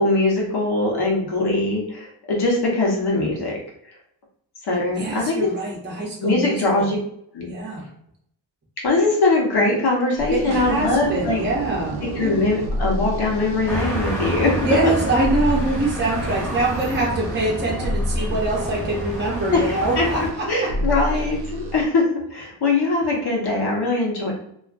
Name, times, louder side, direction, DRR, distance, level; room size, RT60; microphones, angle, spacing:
voice 1, 0.0-3.6 4.7-5.5 6.2-7.0 7.3-7.5 8.8-11.4 12.1-14.5 19.5-22.1 22.3-24.3, left 2 dB, 55° left, -2 dB, 1.0 m, -21 dB
voice 2, 4.9-6.9 7.4-7.8 10.3-12.4 14.6-21.3, right 2 dB, 25° right, -3 dB, 0.7 m, -24 dB
sound 1, 10.2-21.9, equal, 60° right, 0.5 m, -30 dB
sound 2, 13.7-20.3, equal, 5° left, 0.9 m, -29 dB
2.4 x 2.4 x 2.4 m, 0.70 s
wide cardioid pair, 155°, 45 cm